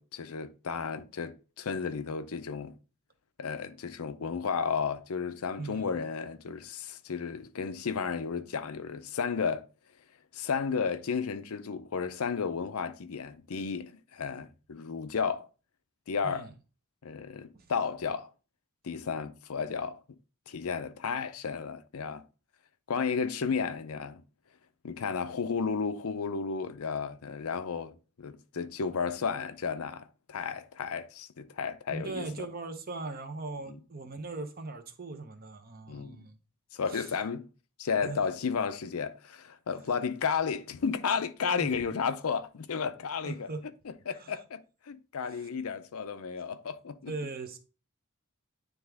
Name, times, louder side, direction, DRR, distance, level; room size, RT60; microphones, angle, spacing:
voice 1, 0.0-2.8 3.4-9.7 10.3-15.5 16.1-16.5 17.0-18.3 18.8-20.0 20.5-22.2 22.9-24.2 24.8-32.5 33.6-33.8 35.9-36.3 36.7-37.5 37.8-43.5 43.9-47.1, left 5 dB, 75° left, 0.5 m, -33 dB
voice 2, 5.6-6.0 16.2-16.5 17.5-17.7 31.9-36.4 36.9-37.1 38.0-38.2 41.5-41.7 43.2-43.6 44.2-44.4 45.2-45.5 47.1-47.6, right 3 dB, 40° right, 0.9 m, -39 dB
9.4 x 3.5 x 3.4 m
head